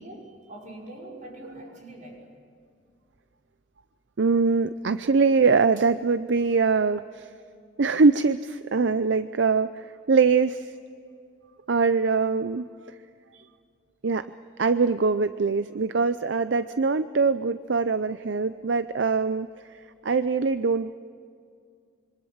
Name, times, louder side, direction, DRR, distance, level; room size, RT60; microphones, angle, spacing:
voice 1, 0.0-2.3, right 1 dB, 40° right, -1 dB, 5.6 m, -43 dB
voice 2, 4.2-7.3 7.8-10.7 11.7-12.7 13.3-13.4 14.0-14.3 14.6-19.5 20.0-20.9, right 4 dB, 65° right, 12 dB, 0.6 m, -23 dB
26.5 x 24.5 x 7.3 m, 2.3 s
head